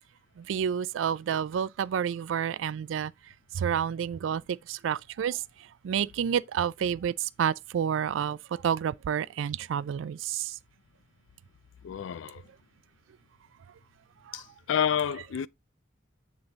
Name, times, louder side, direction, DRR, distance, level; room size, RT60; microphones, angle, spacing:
voice 1, 0.5-3.1 3.6-4.4 4.7-5.4 5.8-7.1 7.4-8.4 8.6-10.5, right 8 dB, 85° right, 0.3 m, -29 dB
voice 2, 11.8-12.4 14.3-15.5, left 8 dB, 80° left, 0.3 m, -29 dB
7.8 x 3.7 x 3.9 m
head